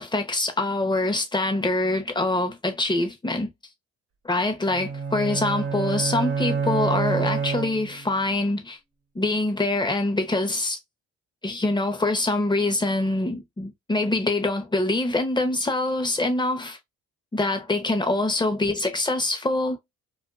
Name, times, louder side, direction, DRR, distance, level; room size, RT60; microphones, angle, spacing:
voice 1, 0.0-3.5 4.2-8.8 9.1-10.8 11.4-16.8 17.3-19.8, left 2 dB, 15° left, 0.8 m, -24 dB
sound 1, 4.7-8.2, right 5 dB, 45° right, 1.1 m, -28 dB
2.5 x 2.4 x 2.4 m
cardioid pair, 90°, 30 cm